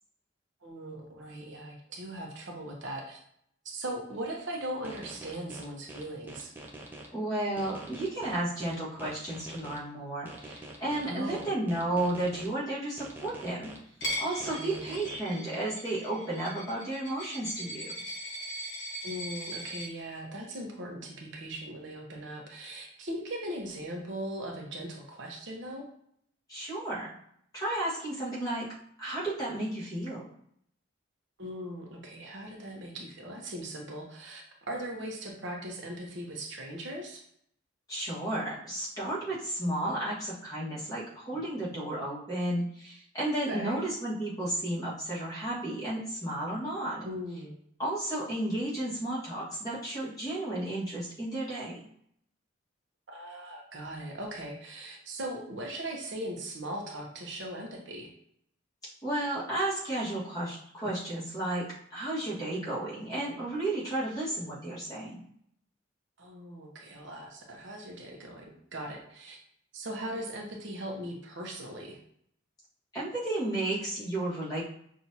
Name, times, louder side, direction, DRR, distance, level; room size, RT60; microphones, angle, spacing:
voice 1, 0.6-3.2 3.6-6.5 11.0-11.5 14.4-14.8 19.0-25.9 31.4-37.2 43.5-43.8 47.0-47.5 53.1-58.1 66.2-69.4 69.7-72.0, right 1 dB, 65° right, 0 dB, 0.9 m, -39 dB
sound 1, 4.8-7.1 7.6-9.8 10.3-12.5 13.0-15.2, right 1 dB, 10° right, 0.5 m, -45 dB
voice 2, 7.1-13.7 14.2-17.9 26.5-27.1 27.5-28.6 29.0-30.3 37.9-47.0 47.8-51.9 59.0-61.6 61.9-65.2 72.9-74.6, right 1 dB, 20° left, -8 dB, 1.6 m, -33 dB
Coin (dropping), 14.0-19.9, equal, 60° left, 1.1 m, -39 dB
5.9 x 2.6 x 2.8 m, 0.68 s
head